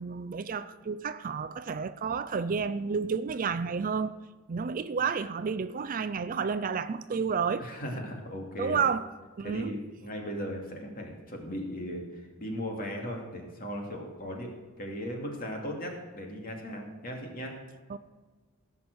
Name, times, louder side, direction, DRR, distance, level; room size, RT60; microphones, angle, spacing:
voice 1, 0.0-4.1 4.5-7.7 8.6-9.1 9.4-9.7 17.9-18.0, right 5 dB, 40° right, 0.4 m, -31 dB
voice 2, 7.6-8.8 9.4-14.5 14.8-17.6, equal, 40° left, 2.5 m, -37 dB
17.0 x 6.1 x 6.2 m
head